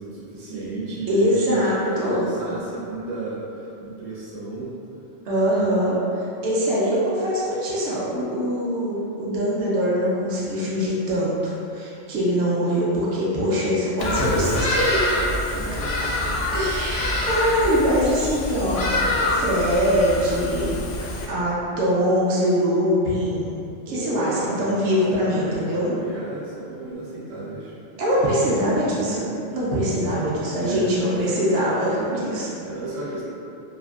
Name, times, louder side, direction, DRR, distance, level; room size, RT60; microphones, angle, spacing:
voice 1, 0.0-5.0 15.5-16.3 23.9-27.7 30.5-31.4 31.8-33.2, right 2 dB, 90° right, -7 dB, 1.1 m, -33 dB
voice 2, 1.1-2.3 5.2-15.6 16.5-23.5 23.9-25.9 28.0-32.5, equal, 70° right, -7 dB, 0.9 m, -23 dB
Bird vocalization bird call bird song, 14.0-21.3, left 1 dB, 60° left, 0.5 m, -25 dB
2.9 x 2.4 x 2.3 m, 2.6 s
omnidirectional pair, 1.3 m